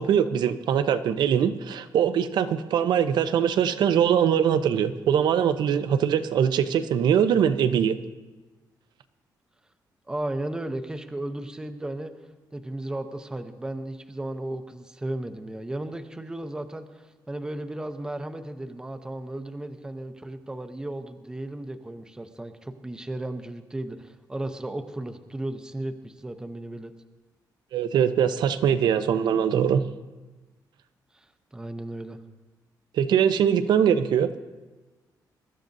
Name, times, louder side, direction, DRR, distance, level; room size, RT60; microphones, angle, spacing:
voice 1, 0.0-8.0 27.7-29.8 32.9-34.3, right 8 dB, 80° right, 10 dB, 0.7 m, -22 dB
voice 2, 10.1-12.1 12.5-26.9 31.1-31.3 31.5-32.2, right 1 dB, 10° right, 7 dB, 0.7 m, -35 dB
23.5 x 13.0 x 2.7 m, 1.2 s
wide cardioid pair, 155°, 7 cm